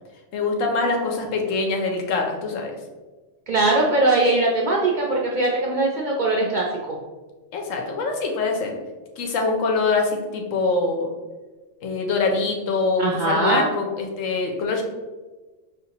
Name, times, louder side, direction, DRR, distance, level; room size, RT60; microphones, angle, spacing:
voice 1, 0.3-2.7 7.5-8.7 9.2-11.1 11.8-14.8, left 3 dB, 90° left, 2 dB, 1.1 m, -24 dB
voice 2, 3.5-7.0 13.0-13.6, right 2 dB, 65° right, -2 dB, 0.4 m, -21 dB
5.0 x 2.6 x 2.8 m, 1.3 s
omnidirectional pair, 1.3 m